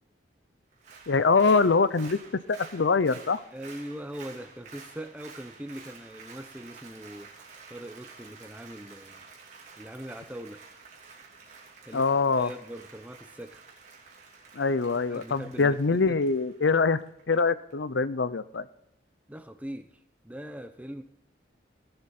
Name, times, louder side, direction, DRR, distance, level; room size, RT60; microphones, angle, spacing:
Applause, 0.7-17.3 17.7-17.8, right 4 dB, 40° right, 2.9 m, -50 dB
voice 1, 1.1-2.2 2.5-3.4 11.9-12.5 14.6-17.0 17.3-18.6, left 4 dB, 70° left, 0.6 m, -24 dB
voice 2, 3.5-7.3 7.7-9.3 9.8-10.6 11.8-12.1 12.4-13.6 15.1-16.2 19.3-20.0 20.2-21.0, equal, 5° right, 0.7 m, -41 dB
18.0 x 7.9 x 4.3 m
head